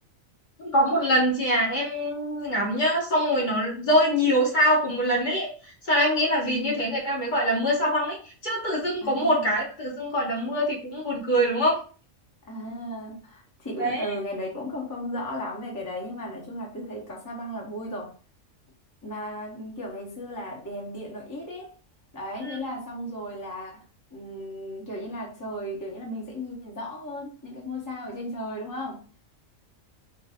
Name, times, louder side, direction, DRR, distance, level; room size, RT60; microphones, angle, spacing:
voice 1, 0.6-5.5 5.9-11.8 13.8-14.1 22.4-22.6, equal, 45° left, -3 dB, 0.8 m, -24 dB
voice 2, 6.5-6.8 9.0-9.5 12.5-18.1 19.0-21.7 22.1-23.8 24.1-29.0, equal, 25° left, -3 dB, 0.4 m, -35 dB
2.7 x 2.6 x 2.3 m, 0.39 s
omnidirectional pair, 1.4 m